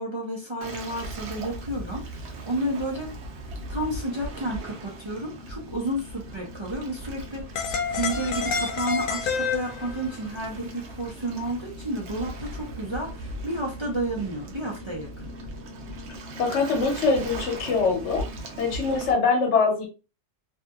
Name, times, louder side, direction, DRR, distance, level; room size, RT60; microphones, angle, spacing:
voice 1, 0.0-3.1 3.7-7.5 7.9-15.3, right 1 dB, 40° right, -2 dB, 0.4 m, -31 dB
Waves surf, 0.6-19.1, right 1 dB, 75° right, 0.9 m, -38 dB
sound 1, 7.6-10.1, left 6 dB, 60° left, 0.6 m, -28 dB
voice 2, 16.4-18.2 18.6-19.9, left 4 dB, 75° left, 2 dB, 1.1 m, -23 dB
2.6 x 2.6 x 2.3 m, 0.30 s
omnidirectional pair, 1.2 m